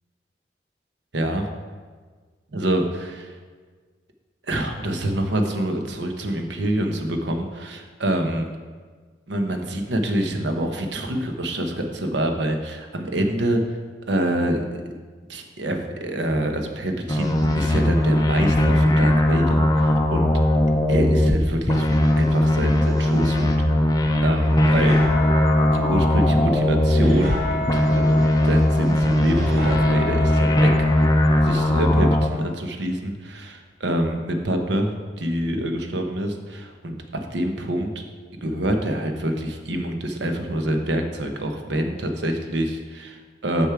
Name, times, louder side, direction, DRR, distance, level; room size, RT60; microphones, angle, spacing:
voice 1, 1.1-1.5 2.5-3.3 4.5-8.5 9.3-13.6 14.1-14.8 15.3-20.3 20.9-23.6 24.2-25.0 25.7-28.2 28.4-30.9 31.4-38.0 38.4-43.7, right 1 dB, 80° right, 5 dB, 0.9 m, -26 dB
sound 1, 17.1-21.4 21.7-27.4 27.7-32.3, left 1 dB, 20° left, 0.6 m, -19 dB
sound 2, 24.4-32.1, left 1 dB, 65° right, 2.3 m, -30 dB
6.6 x 6.2 x 4.7 m, 1.5 s
head